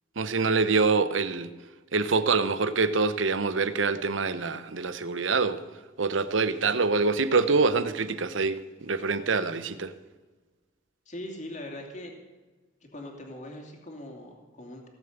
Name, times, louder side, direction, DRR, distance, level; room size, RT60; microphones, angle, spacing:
voice 1, 0.2-1.5 1.9-5.6 6.0-9.9, right 4 dB, 85° right, 13 dB, 0.9 m, -25 dB
voice 2, 11.1-12.2 12.8-14.9, left 1 dB, 40° left, 1 dB, 2.6 m, -41 dB
17.5 x 7.3 x 8.0 m, 1.3 s
head